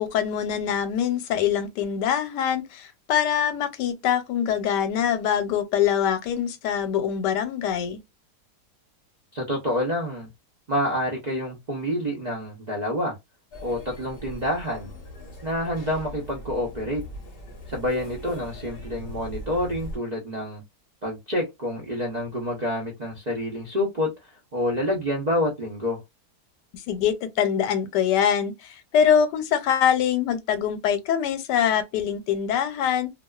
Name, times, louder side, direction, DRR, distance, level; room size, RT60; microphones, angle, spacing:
voice 1, 0.0-8.0 26.7-33.1, left 8 dB, 85° left, 1.2 m, -24 dB
voice 2, 9.3-10.3 10.7-13.1 13.6-14.9 15.4-17.0 17.7-20.6 21.0-26.0, left 1 dB, 70° right, 0.4 m, -28 dB
sound 1, 13.5-20.0, left 1 dB, 50° left, 0.7 m, -40 dB
2.5 x 2.3 x 2.3 m
omnidirectional pair, 1.8 m